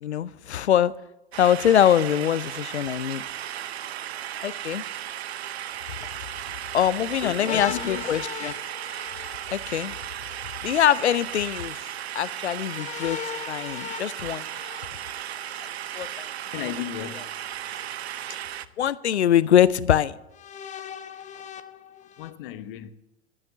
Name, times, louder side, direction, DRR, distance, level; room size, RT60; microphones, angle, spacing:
voice 1, 0.0-0.9 1.4-3.2 4.4-4.8 6.7-8.5 9.5-10.0 10.6-11.8 12.1-13.2 13.5-14.4 15.6-16.3 18.8-20.1, left 10 dB, 80° left, 0.6 m, -23 dB
sound 1, 1.3-18.7, right 11 dB, 70° right, 0.7 m, -35 dB
voice 2, 7.2-8.1 16.5-17.3 22.2-22.9, left 12 dB, 55° left, 1.1 m, -34 dB
sound 2, 7.5-10.1 12.6-15.6 16.9-17.8 18.6-18.7 20.3-22.3, left 8 dB, 20° left, 0.8 m, -39 dB
14.0 x 8.8 x 6.6 m
figure-of-eight pair, 90°, 33 cm